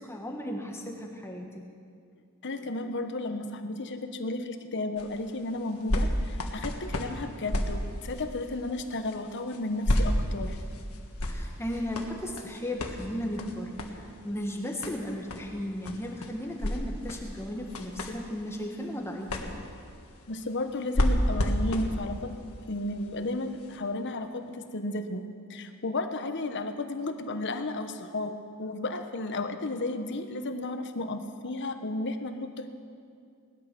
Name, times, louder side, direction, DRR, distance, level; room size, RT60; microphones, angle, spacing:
voice 1, 0.0-1.6 11.2-19.3 29.4-29.6, left 1 dB, 10° left, 1 dB, 1.4 m, -35 dB
voice 2, 2.4-10.6 20.3-22.3 22.7-32.7, left 2 dB, 55° left, 7 dB, 1.0 m, -33 dB
sound 1, 5.0-23.8 24.4-24.5, equal, 70° left, 1.6 m, -33 dB
18.5 x 12.5 x 6.1 m, 2.3 s
head